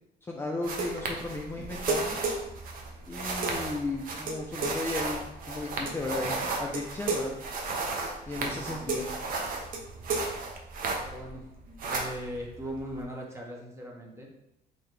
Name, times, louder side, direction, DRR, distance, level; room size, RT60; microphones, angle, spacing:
voice 1, 0.3-2.2 3.1-7.3 8.3-9.1, left 2 dB, 15° left, -1 dB, 0.4 m, -35 dB
sound 1, 0.6-11.3 11.6-13.0, right 3 dB, 55° right, 0.7 m, -33 dB
voice 2, 8.4-8.9 11.0-11.4 11.9-14.3, equal, 15° right, -1 dB, 0.9 m, -39 dB
3.8 x 2.8 x 3.2 m, 0.84 s
cardioid pair, 110°, 17 cm